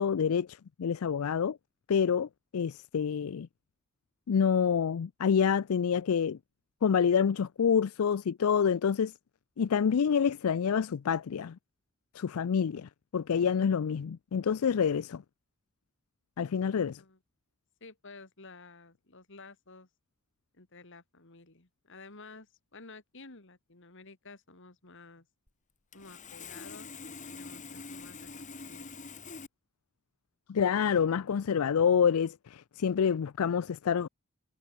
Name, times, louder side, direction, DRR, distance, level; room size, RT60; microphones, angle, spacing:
voice 1, 0.0-1.6 1.9-3.5 4.3-6.4 6.8-9.1 9.6-11.6 12.1-15.2 16.4-17.0 30.5-34.1, left 7 dB, 75° left, 0.4 m, -27 dB
voice 2, 17.8-19.9 20.5-25.3 25.9-26.9 27.3-28.9, left 3 dB, 55° left, 2.6 m, -52 dB
Sawing, 25.5-25.6 25.9-29.5, left 4 dB, 35° left, 2.3 m, -45 dB
head